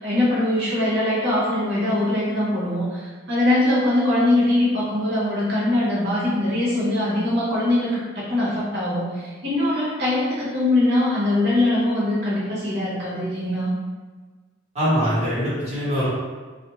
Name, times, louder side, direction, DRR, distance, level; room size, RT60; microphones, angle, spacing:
voice 1, 0.0-13.7, left 1 dB, 60° right, -8 dB, 1.0 m, -22 dB
voice 2, 14.7-16.1, equal, 35° right, -11 dB, 1.1 m, -22 dB
2.5 x 2.1 x 2.9 m, 1.4 s
head